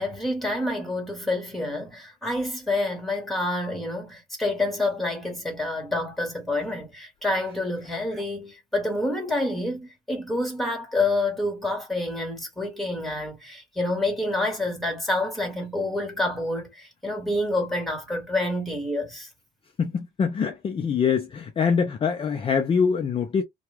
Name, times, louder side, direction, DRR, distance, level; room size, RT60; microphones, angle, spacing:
voice 1, 0.0-19.3, left 2 dB, ahead, 1.6 m, -28 dB
voice 2, 19.8-23.4, left 6 dB, 30° left, 0.5 m, -24 dB
2.8 x 2.3 x 3.3 m
cardioid pair, 110°, 17 cm